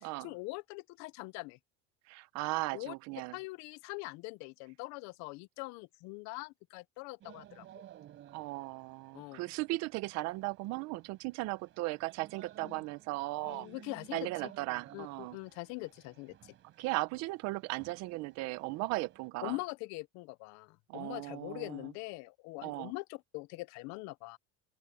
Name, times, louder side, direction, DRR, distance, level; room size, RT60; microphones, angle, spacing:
voice 1, 0.0-1.6 2.7-2.9 3.3-7.8 9.1-9.4 12.6-12.8 13.4-14.5 14.9-16.5 19.4-24.4, left 23 dB, 65° left, 0.8 m, -43 dB
voice 2, 2.1-3.4 8.3-13.7 14.1-15.4 16.8-19.6 20.9-21.9 22.6-22.9, right 21 dB, 60° right, 0.9 m, -37 dB
sound 1, 7.2-19.3, right 12 dB, 40° right, 4.5 m, -57 dB
open air
cardioid pair, 155°, 30 cm